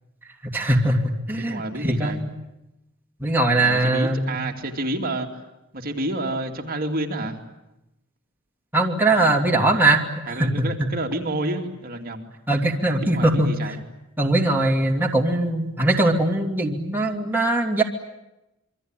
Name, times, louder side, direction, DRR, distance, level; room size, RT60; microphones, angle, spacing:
voice 1, 0.5-2.3 3.2-4.4 8.7-10.0 10.4-10.7 12.5-13.5 14.2-17.8, right 2 dB, 10° right, 0 dB, 2.7 m, -21 dB
voice 2, 1.3-2.2 3.6-5.3 5.7-7.4 9.2-9.4 10.3-12.3 13.0-13.8, right 1 dB, 45° right, 2 dB, 2.7 m, -29 dB
27.5 x 23.5 x 9.1 m, 0.93 s
head